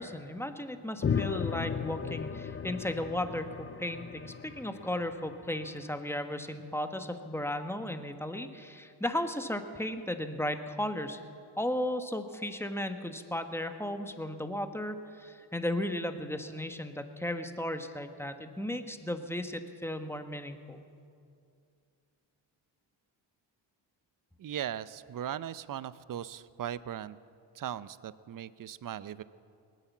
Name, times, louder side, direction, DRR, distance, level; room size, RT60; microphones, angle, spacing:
voice 1, 0.0-11.2 11.6-20.8, left 1 dB, 5° left, 7 dB, 1.3 m, -35 dB
sound 1, 1.0-5.7, left 7 dB, 25° left, 0.5 m, -35 dB
voice 2, 24.4-27.2 27.5-29.2, right 10 dB, 40° right, 17 dB, 0.6 m, -38 dB
19.5 x 9.1 x 7.3 m, 2.4 s
supercardioid pair, 55°, 50 cm